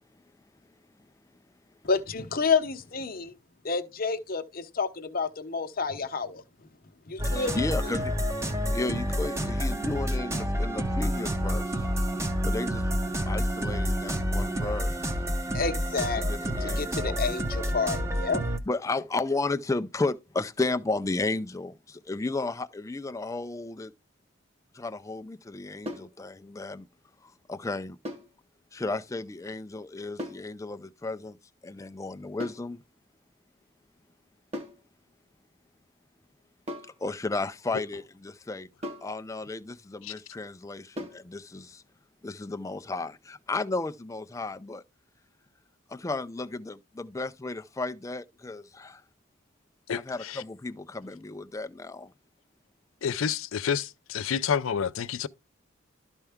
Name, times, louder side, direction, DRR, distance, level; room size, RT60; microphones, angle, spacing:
voice 1, 1.8-3.3 3.6-6.4 7.1-7.6 15.5-16.2 16.6-18.4, left 5 dB, 45° left, 0.8 m, -29 dB
voice 2, 7.2-8.1 8.7-11.9 12.4-12.9 13.3-15.2 16.2-17.2 18.7-23.9 24.7-26.9 27.2-28.0 28.7-31.4 31.6-32.8 37.0-38.7 39.0-41.8 42.2-44.8 45.9-49.0 49.9-52.1, left 3 dB, 15° left, 0.3 m, -33 dB
sound 1, 7.2-18.6, equal, 15° right, 0.7 m, -29 dB
sound 2, 25.9-26.2 28.1-28.4 30.2-30.5 32.4-32.7 34.5-34.8 36.7-37.0 38.8-39.2 41.0-41.3, left 1 dB, 30° right, 1.2 m, -38 dB
voice 3, 49.9-50.4 53.0-55.3, left 7 dB, 75° left, 0.5 m, -29 dB
12.5 x 4.4 x 3.5 m
head